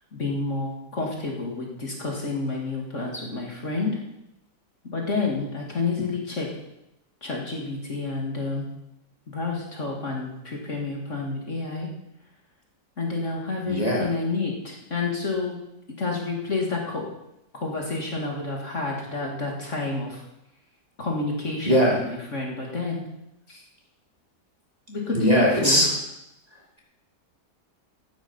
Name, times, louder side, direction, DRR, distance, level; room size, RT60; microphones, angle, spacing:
voice 1, 0.1-3.9 4.9-6.5 7.2-8.7 9.3-11.9 13.0-15.6 16.0-17.1 17.5-20.2 21.0-23.0 23.5-23.6 24.9-25.8, left 3 dB, 45° left, -1 dB, 2.5 m, -29 dB
voice 2, 13.7-14.1 21.6-22.0 25.1-25.9, equal, 20° right, -2 dB, 2.8 m, -20 dB
14.0 x 9.3 x 5.6 m, 0.84 s
omnidirectional pair, 1.8 m